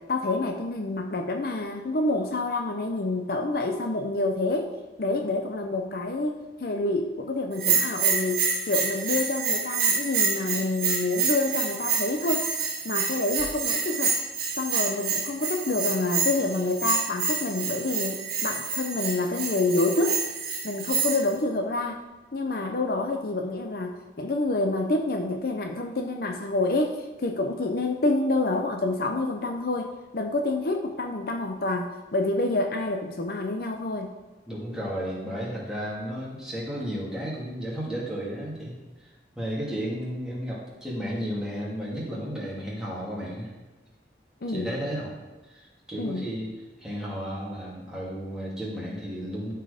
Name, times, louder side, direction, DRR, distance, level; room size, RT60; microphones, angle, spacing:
voice 1, 0.1-12.5 12.8-14.2 14.5-20.2 20.6-22.0 22.3-34.2 44.4-44.7 46.0-46.3, left 2 dB, 55° left, 3 dB, 0.7 m, -28 dB
Bell, 7.6-21.3, right 5 dB, 55° right, 1.6 m, -27 dB
voice 2, 34.5-39.1 39.4-43.5 44.5-45.1 45.5-49.5, equal, 5° right, -6 dB, 2.4 m, -33 dB
12.0 x 4.6 x 5.0 m, 1.2 s
head